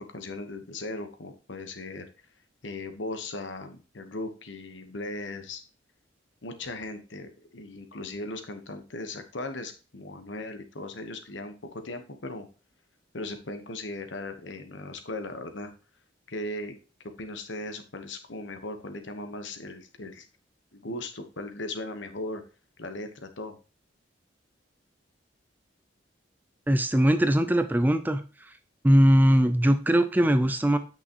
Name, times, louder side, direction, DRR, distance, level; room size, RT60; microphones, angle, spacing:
voice 1, 0.0-2.1 2.6-5.6 6.4-12.5 13.1-15.7 16.3-16.8 17.2-20.3 20.7-22.4 22.8-23.6, left 2 dB, 80° left, 7 dB, 1.1 m, -38 dB
voice 2, 26.7-28.2 28.8-30.8, equal, 10° right, 10 dB, 0.4 m, -20 dB
8.5 x 6.1 x 2.9 m, 0.35 s
head